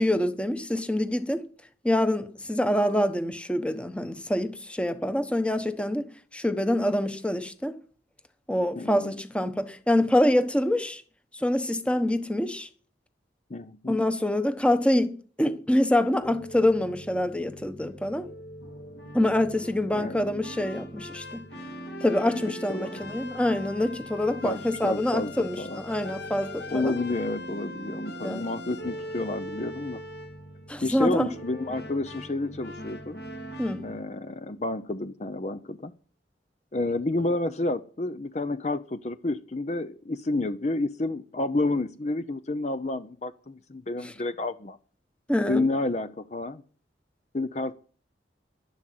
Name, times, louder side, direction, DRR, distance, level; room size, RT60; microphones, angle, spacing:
voice 1, 0.0-1.4 1.8-7.7 8.5-11.0 11.3-12.7 13.9-15.1 15.4-18.3 19.1-21.5 22.0-26.9 28.2-28.5 30.7-31.3 33.6-33.9 44.0-44.1 45.3-45.6, left 1 dB, 5° left, 1.0 m, -26 dB
voice 2, 8.8-9.1 13.5-14.0 19.9-20.2 22.3-23.0 24.4-25.8 26.7-30.0 30.8-33.2 33.8-35.9 36.7-44.8 45.5-46.6 47.3-47.7, left 2 dB, 35° left, 0.6 m, -30 dB
sound 1, 16.2-34.0, equal, 60° left, 2.1 m, -41 dB
11.5 x 11.0 x 7.7 m
head